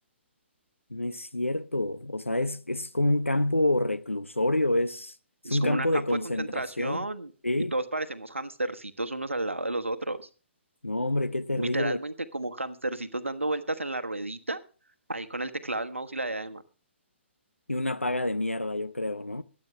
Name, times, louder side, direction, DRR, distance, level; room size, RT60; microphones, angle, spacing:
voice 1, 0.9-5.1 5.5-7.1 7.4-7.7 10.8-12.0 17.7-19.4, left 1 dB, 85° left, 0.8 m, -27 dB
voice 2, 5.4-7.3 7.7-10.3 11.6-14.6 15.1-16.6, right 2 dB, 80° right, 1.2 m, -32 dB
22.5 x 8.9 x 3.3 m
figure-of-eight pair, 130°, 7 cm